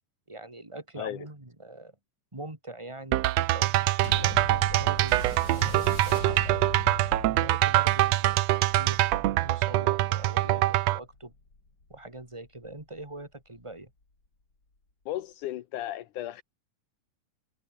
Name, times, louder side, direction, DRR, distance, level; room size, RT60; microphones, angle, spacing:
voice 1, 0.3-1.9 2.3-6.6 7.2-11.3 11.9-13.9, right 2 dB, 10° right, 2.8 m, -43 dB
sound 1, 3.1-11.0, right 15 dB, 75° right, 1.7 m, -24 dB
sound 2, 4.0-12.8 13.6-13.7, left 3 dB, 30° left, 5.6 m, -41 dB
voice 2, 15.1-16.4, left 13 dB, 80° left, 2.5 m, -35 dB
omnidirectional pair, 3.6 m